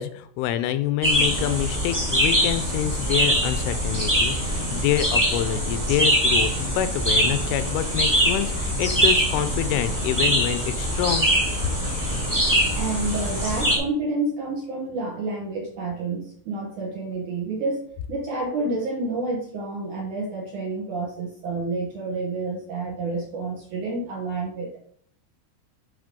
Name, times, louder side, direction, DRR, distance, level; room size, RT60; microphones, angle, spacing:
voice 1, 0.0-11.3, left 12 dB, 80° left, 12 dB, 2.9 m, -26 dB
sound 1, 1.0-13.8, equal, 10° right, 1.0 m, -23 dB
voice 2, 12.8-24.8, right 3 dB, 75° right, -2 dB, 1.8 m, -29 dB
11.5 x 3.9 x 5.2 m, 0.62 s
omnidirectional pair, 5.8 m